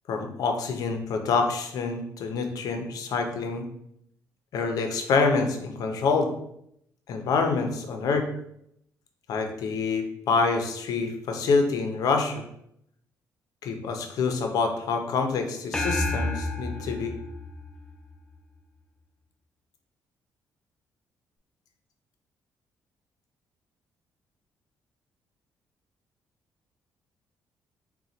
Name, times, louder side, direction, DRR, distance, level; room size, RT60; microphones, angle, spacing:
voice 1, 0.1-3.6 4.5-6.3 7.1-8.2 9.3-12.4 13.6-17.1, left 4 dB, 65° left, 5 dB, 0.6 m, -26 dB
sound 1, 15.7-18.4, left 2 dB, 10° left, 0.3 m, -30 dB
3.8 x 2.2 x 4.2 m, 0.74 s
cardioid pair, 165°, 7 cm